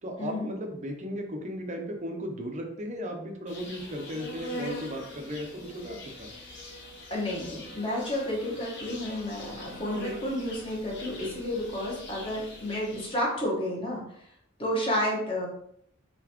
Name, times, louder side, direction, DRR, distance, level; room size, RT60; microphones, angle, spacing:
voice 1, 0.0-6.3, equal, 35° right, 3 dB, 0.7 m, -36 dB
Insect, 3.5-13.3, left 1 dB, 55° left, 1.1 m, -42 dB
voice 2, 7.1-14.0 14.6-15.5, left 1 dB, 25° left, -3 dB, 1.2 m, -31 dB
4.0 x 3.7 x 3.0 m, 0.69 s
head